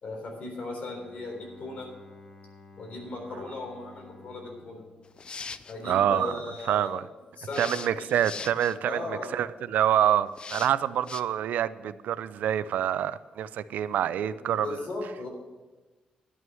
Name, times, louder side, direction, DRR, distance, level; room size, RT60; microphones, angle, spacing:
voice 1, 0.0-1.9 2.8-4.8 5.7-7.0 7.4-8.1 8.8-9.4 14.5-15.3, left 2 dB, 55° left, 3.7 m, -37 dB
Bowed string instrument, 0.9-6.2, left 3 dB, 15° left, 1.6 m, -53 dB
sound 1, 5.1-5.7 7.5-8.8 10.4-10.7 11.1-11.2, left 5 dB, 35° left, 0.4 m, -39 dB
voice 2, 5.8-6.4 6.7-7.0 7.6-14.8, right 10 dB, 90° right, 0.4 m, -26 dB
11.0 x 6.2 x 7.6 m
cardioid pair, 115°, 3 cm